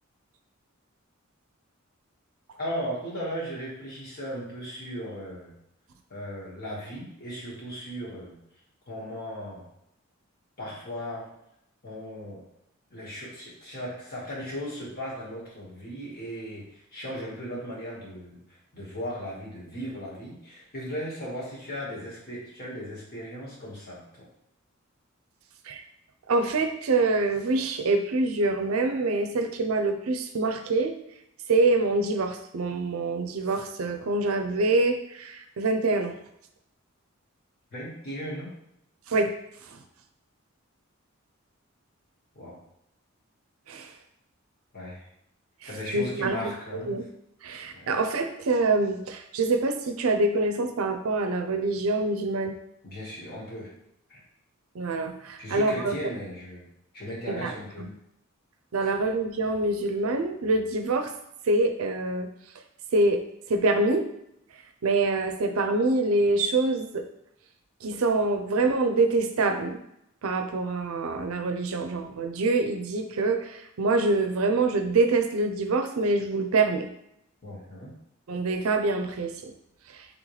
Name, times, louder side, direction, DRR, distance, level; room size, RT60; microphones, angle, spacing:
voice 1, 2.6-5.5 6.1-8.4 8.9-9.7 10.6-11.3 11.8-12.4 12.9-18.4 18.7-24.2 37.7-38.5 42.3-42.6 44.7-45.0 45.6-47.0 47.7-47.9 52.8-53.7 54.1-54.2 55.4-56.7 56.9-57.9 58.7-59.0 77.4-77.9, equal, 45° left, -6 dB, 1.6 m, -37 dB
voice 2, 26.3-30.9 31.5-36.1 39.1-39.3 43.7-43.9 45.9-47.0 47.4-52.5 54.8-56.0 57.3-57.5 57.8-57.9 58.7-61.1 61.5-62.3 62.9-63.2 63.5-64.1 64.8-67.0 67.8-69.8 70.2-76.9 78.3-79.5, right 2 dB, 80° right, 6 dB, 0.5 m, -25 dB
3.8 x 3.5 x 3.2 m, 0.78 s
head